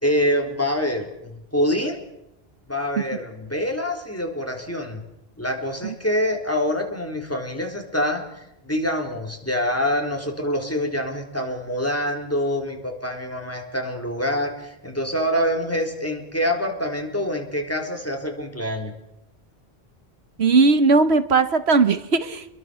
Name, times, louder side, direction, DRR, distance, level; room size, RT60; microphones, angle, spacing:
voice 1, 0.0-2.0 2.7-5.0 5.4-18.9, equal, 15° left, 2 dB, 4.0 m, -25 dB
voice 2, 20.4-22.5, right 4 dB, 85° right, 11 dB, 1.5 m, -18 dB
29.0 x 22.5 x 7.0 m, 0.87 s
omnidirectional pair, 1.1 m